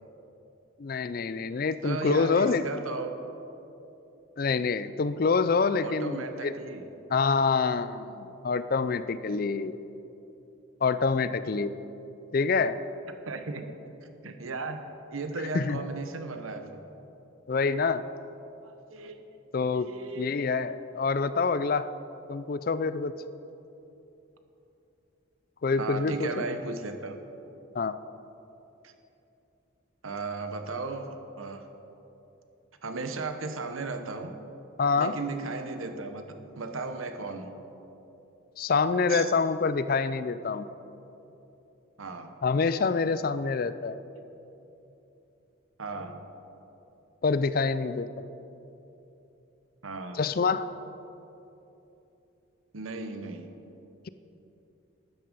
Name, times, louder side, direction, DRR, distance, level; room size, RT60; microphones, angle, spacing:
voice 1, 0.8-2.6 4.4-6.5 7.1-9.8 10.8-11.7 12.3-12.8 15.5-15.8 17.5-18.1 19.5-21.9 22.3-23.1 25.6-26.4 27.7-28.0 34.8-35.1 38.6-40.7 42.4-44.0 47.2-48.2 50.1-50.7, left 4 dB, 45° left, 14 dB, 0.4 m, -26 dB
voice 2, 1.8-3.1 5.8-6.8 13.2-14.0 14.2-14.9 15.1-16.9 18.6-19.2 19.7-20.4 25.8-27.2 28.8-28.9 30.0-31.7 32.8-34.3 34.9-37.5 39.1-39.3 42.0-42.3 45.8-46.2 49.8-50.2 52.7-53.5, right 3 dB, 85° right, 7 dB, 1.0 m, -36 dB
12.5 x 11.0 x 5.3 m, 3.0 s
head